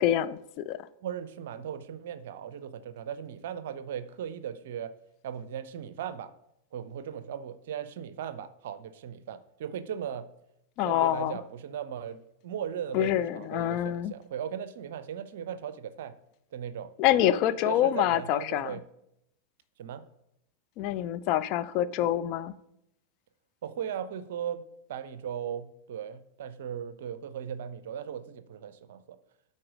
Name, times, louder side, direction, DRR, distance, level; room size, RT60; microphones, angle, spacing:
voice 1, 0.0-0.9 10.8-11.4 12.9-14.1 17.0-18.8 20.8-22.6, left 12 dB, 40° left, 0.3 m, -26 dB
voice 2, 1.0-4.9 5.2-6.3 6.7-10.3 10.8-16.1 16.5-16.9 17.2-17.4 17.7-18.8 19.8-20.0 23.6-24.6 24.9-29.2, right 8 dB, 55° right, 0.5 m, -37 dB
8.5 x 4.2 x 5.0 m
figure-of-eight pair, 90°, 0 cm